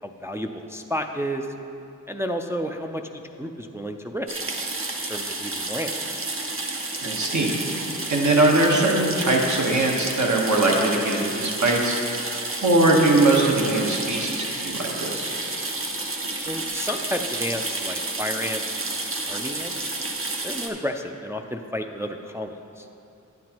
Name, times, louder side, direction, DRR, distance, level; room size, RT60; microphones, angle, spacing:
voice 1, 0.0-1.5 2.1-4.4 5.1-5.9 16.4-18.8 19.3-19.9 20.4-22.8, equal, 10° right, 4 dB, 0.3 m, -31 dB
sound 1, 4.3-20.7, right 2 dB, 45° right, 0.8 m, -30 dB
voice 2, 7.0-7.6 8.1-12.3 12.6-15.3, right 2 dB, 65° right, -1 dB, 1.2 m, -21 dB
9.3 x 9.2 x 2.9 m, 2.7 s
wide cardioid pair, 85°, 31 cm